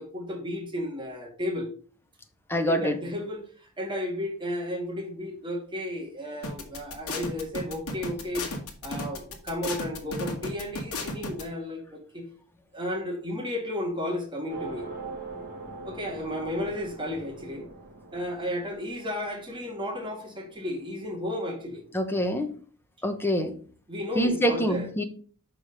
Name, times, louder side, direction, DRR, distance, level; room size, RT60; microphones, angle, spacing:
voice 1, 0.0-1.7 2.7-8.5 8.8-12.2 12.7-14.9 15.8-17.7 18.1-21.8 23.9-24.9, left 1 dB, 20° right, 1.7 m, -33 dB
voice 2, 2.5-3.0 21.9-22.5 23.0-23.5 24.1-25.0, equal, 10° left, 0.9 m, -25 dB
sound 1, 6.4-11.4, left 2 dB, 70° left, 1.4 m, -33 dB
sound 2, 14.5-21.3, right 3 dB, 45° right, 1.6 m, -43 dB
6.1 x 4.9 x 5.2 m
head